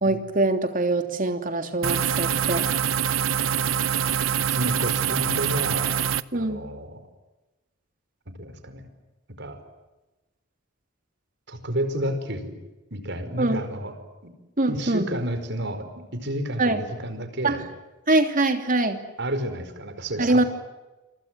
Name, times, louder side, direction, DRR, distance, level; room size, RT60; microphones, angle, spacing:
voice 1, 0.0-2.7 6.3-6.7 13.4-13.6 14.6-15.1 16.6-16.8 17.4-17.6 18.1-19.0 20.2-20.4, right 2 dB, 40° right, 7 dB, 3.1 m, -23 dB
sound 1, 1.8-6.2, right 8 dB, 80° right, 0.8 m, -24 dB
voice 2, 4.4-5.9 6.3-7.0 8.4-8.8 9.4-9.6 11.5-12.5 12.9-13.9 14.2-14.3 14.7-17.6 19.2-20.5, right 1 dB, 60° right, 9 dB, 5.0 m, -30 dB
29.0 x 25.0 x 7.7 m, 1.1 s
head